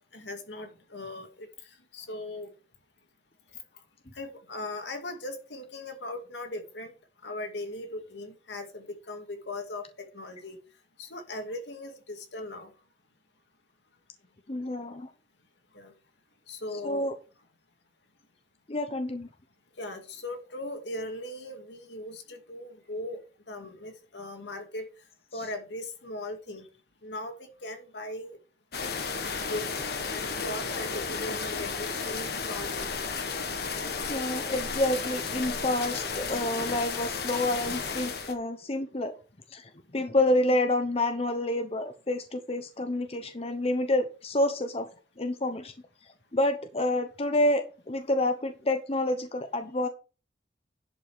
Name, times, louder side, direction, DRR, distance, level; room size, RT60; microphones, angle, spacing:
voice 1, 0.1-1.5 1.9-2.5 4.2-6.9 7.2-10.6 11.0-12.7 15.7-15.9 16.5-17.1 19.8-23.2 23.5-24.8 25.3-26.6 27.0-27.4 27.6-28.4 29.5-32.9, left 2 dB, 75° left, 2.2 m, -38 dB
voice 2, 14.5-15.1 16.8-17.1 18.7-19.3 25.3-25.4 34.1-39.2 39.5-44.9 45.2-45.7 46.3-49.9, left 1 dB, 35° left, 0.9 m, -28 dB
sound 1, 28.7-38.3, left 5 dB, 60° left, 1.4 m, -33 dB
10.5 x 5.6 x 4.9 m
head